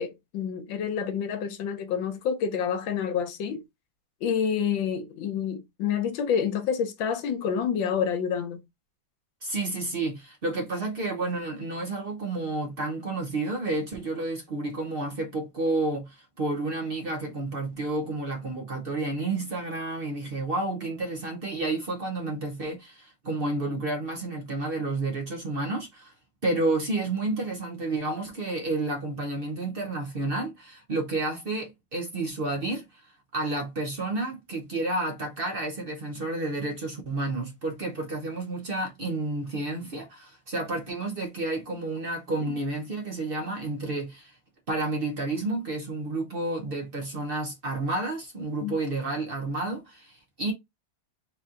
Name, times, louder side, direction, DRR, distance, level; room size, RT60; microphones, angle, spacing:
voice 1, 0.0-3.6 4.2-8.6 42.4-42.5 48.6-48.7, left 7 dB, 70° left, 1.5 m, -28 dB
voice 2, 9.4-26.1 26.4-44.4 44.7-50.5, right 2 dB, 70° right, 0.5 m, -30 dB
4.1 x 2.7 x 3.7 m
omnidirectional pair, 2.2 m